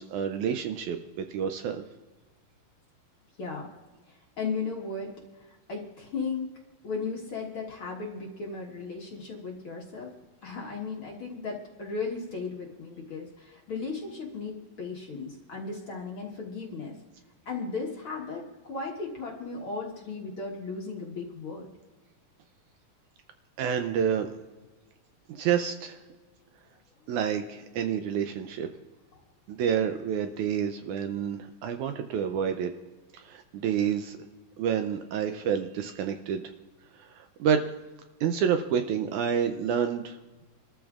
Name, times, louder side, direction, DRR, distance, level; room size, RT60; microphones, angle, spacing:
voice 1, 0.0-1.8 23.6-24.3 25.3-26.0 27.1-28.7 29.5-32.7 33.1-34.2 34.6-36.4 36.9-37.7 38.2-40.2, right 8 dB, 80° right, 7 dB, 1.9 m, -28 dB
voice 2, 3.4-3.7 4.1-6.5 6.8-10.1 10.4-16.9 17.5-21.7 29.1-29.2, left 4 dB, 50° left, -2 dB, 1.7 m, -36 dB
27.0 x 13.5 x 2.4 m, 1.2 s
omnidirectional pair, 3.8 m